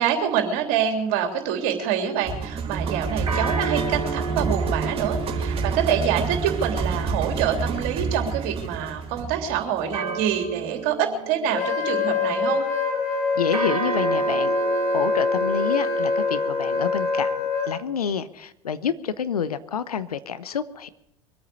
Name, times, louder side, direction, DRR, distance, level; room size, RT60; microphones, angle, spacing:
voice 1, 0.0-12.7, right 8 dB, 50° right, 4 dB, 3.3 m, -26 dB
sound 1, 1.6-2.2 3.3-8.1 9.9-12.3 13.5-16.9, right 2 dB, 75° right, 2.1 m, -34 dB
sound 2, 2.2-10.4, right 5 dB, 30° right, 3.0 m, -28 dB
Wind instrument woodwind instrument, 11.5-17.7, left 3 dB, 45° left, 4.6 m, -24 dB
voice 2, 13.4-14.6 14.9-20.9, left 7 dB, 80° left, 14 dB, 0.9 m, -28 dB
23.5 x 8.9 x 6.7 m, 0.82 s
figure-of-eight pair, 80°, 19 cm